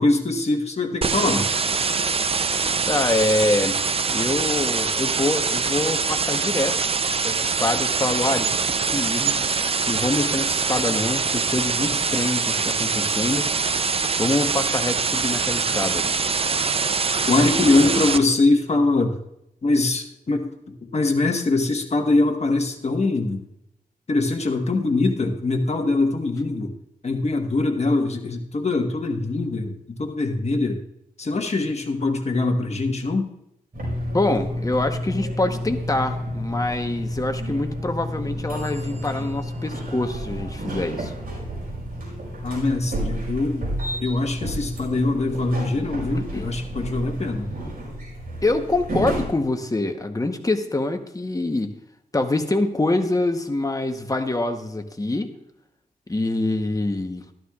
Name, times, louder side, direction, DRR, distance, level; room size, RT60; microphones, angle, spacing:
voice 1, 0.0-1.5 17.3-19.2 19.6-20.5 20.9-23.4 24.1-26.7 27.0-29.7 30.0-30.8 31.2-33.3 42.4-47.5, left 2 dB, 45° left, 4 dB, 1.3 m, -22 dB
sound 1, 1.0-18.2, right 5 dB, 40° right, 0.5 m, -24 dB
voice 2, 2.9-3.8 4.1-6.8 7.2-9.5 9.9-13.5 14.2-16.2 34.1-41.1 46.2-46.5 48.4-51.7 52.1-55.3 56.1-57.2, left 2 dB, 20° left, 6 dB, 1.0 m, -25 dB
sound 2, 33.7-49.3, equal, 65° right, 4.9 m, -31 dB
13.0 x 12.5 x 2.4 m, 0.79 s
wide cardioid pair, 95°, 16 cm